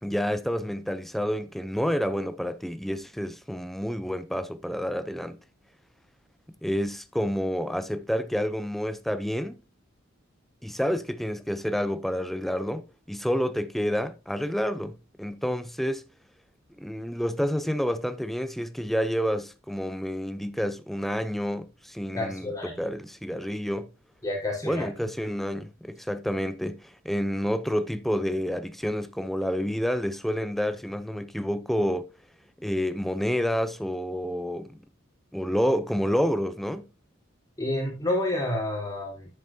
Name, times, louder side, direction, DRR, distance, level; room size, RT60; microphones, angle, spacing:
voice 1, 0.0-5.4 6.6-9.6 10.6-16.0 16.8-23.9 24.6-32.1 32.6-34.8 35.3-36.9, equal, ahead, 0.7 m, -29 dB
voice 2, 22.1-22.9 24.2-24.9 37.6-39.3, left 1 dB, 20° left, 4.4 m, -29 dB
10.5 x 8.1 x 2.8 m
head